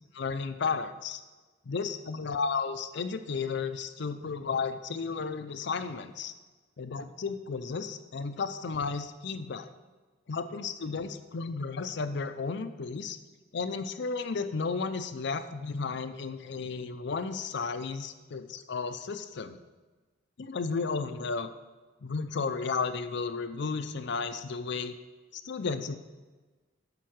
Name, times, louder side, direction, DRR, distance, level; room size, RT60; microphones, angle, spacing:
voice 1, 0.1-1.2 1.7-6.3 6.8-9.7 10.3-13.2 13.5-19.6 20.4-21.5 22.0-24.9 25.3-26.0, left 4 dB, 65° left, 10 dB, 0.5 m, -33 dB
12.0 x 4.6 x 6.4 m, 1.3 s
head